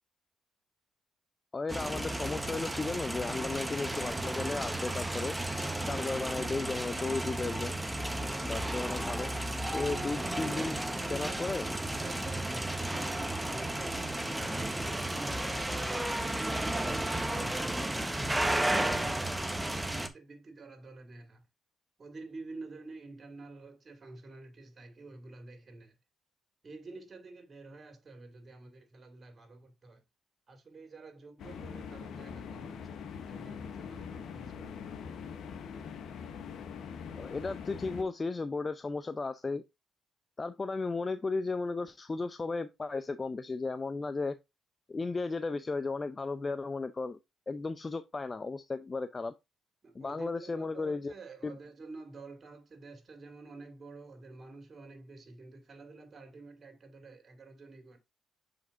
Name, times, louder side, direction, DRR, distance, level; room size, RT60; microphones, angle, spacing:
voice 1, 1.5-5.4 5.9-7.8 8.4-9.3 9.7-10.8 11.1-11.6 37.2-39.6 40.4-44.4 44.9-47.2 47.5-49.3 49.9-51.1 51.4-51.6, left 3 dB, 30° left, 0.5 m, -35 dB
sound 1, 1.7-20.1, right 1 dB, 10° right, 1.0 m, -33 dB
voice 2, 9.1-15.7 16.2-21.4 22.0-25.9 26.6-30.0 30.5-33.0 33.3-35.1 49.8-58.0, right 3 dB, 45° right, 2.5 m, -48 dB
sound 2, 31.4-38.0, left 6 dB, 70° left, 1.0 m, -43 dB
7.2 x 5.2 x 2.5 m
supercardioid pair, 65°, 0 cm